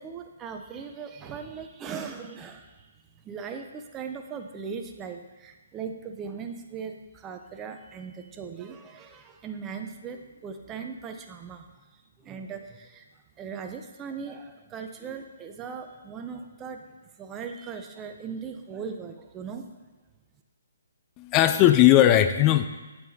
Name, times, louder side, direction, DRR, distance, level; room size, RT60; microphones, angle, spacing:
voice 1, 0.0-2.9 3.2-11.7 11.9-13.1 13.4-16.9 17.1-19.7, right 6 dB, 20° right, 5 dB, 0.6 m, -39 dB
voice 2, 21.2-22.7, left 13 dB, 25° left, 10 dB, 0.4 m, -18 dB
7.7 x 7.5 x 2.7 m, 1.2 s
figure-of-eight pair, 140°, 0 cm